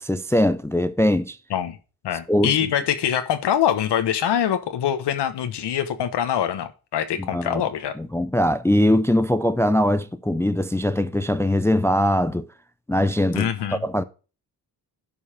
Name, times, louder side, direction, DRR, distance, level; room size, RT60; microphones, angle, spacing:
voice 1, 0.0-1.4 2.3-2.5 7.3-7.6 8.0-12.5 12.9-14.0, left 1 dB, 5° left, 0.4 m, -21 dB
voice 2, 2.0-7.9 13.3-13.8, left 9 dB, 85° left, 1.1 m, -24 dB
11.0 x 5.5 x 4.9 m
wide cardioid pair, 170°, 39 cm